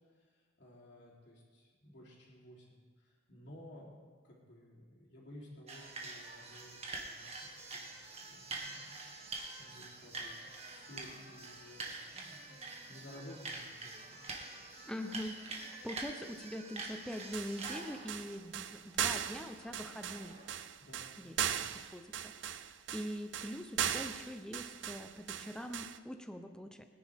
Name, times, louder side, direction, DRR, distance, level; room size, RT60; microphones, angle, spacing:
voice 1, 0.6-9.0 9.6-12.6 12.9-14.3 20.8-21.1 21.4-21.6, left 1 dB, 65° left, -4 dB, 3.5 m, -55 dB
sound 1, 5.7-20.5, right 3 dB, 35° right, 1.8 m, -46 dB
voice 2, 14.9-20.4 21.2-21.4 21.7-26.8, equal, 5° left, 6 dB, 0.8 m, -43 dB
sound 2, 17.1-26.0, right 9 dB, 75° right, 0.5 m, -38 dB
22.0 x 10.5 x 3.6 m, 1.5 s
head